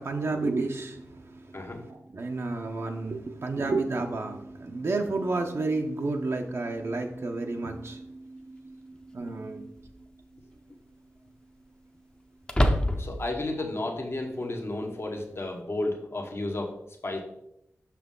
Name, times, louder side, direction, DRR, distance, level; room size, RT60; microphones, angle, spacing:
voice 1, 0.0-8.7 9.1-9.7, right 3 dB, 55° right, 2 dB, 0.6 m, -31 dB
voice 2, 1.5-1.9 13.0-17.2, left 2 dB, 50° left, 2 dB, 1.0 m, -32 dB
sound 1, 7.9-8.0 9.8-10.2 10.5-10.6 12.4-13.3, equal, 15° left, 0.7 m, -25 dB
6.2 x 5.8 x 3.7 m, 0.78 s
wide cardioid pair, 90°, 5 cm